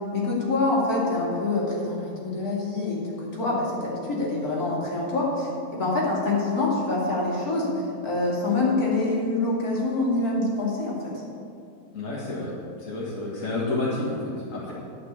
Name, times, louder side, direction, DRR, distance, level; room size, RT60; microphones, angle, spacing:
voice 1, 0.1-7.7 8.0-11.2, left 2 dB, 75° left, -5 dB, 3.0 m, -25 dB
voice 2, 11.9-14.7, left 2 dB, 55° left, -6 dB, 2.0 m, -30 dB
12.0 x 5.6 x 8.2 m, 2.5 s
omnidirectional pair, 1.6 m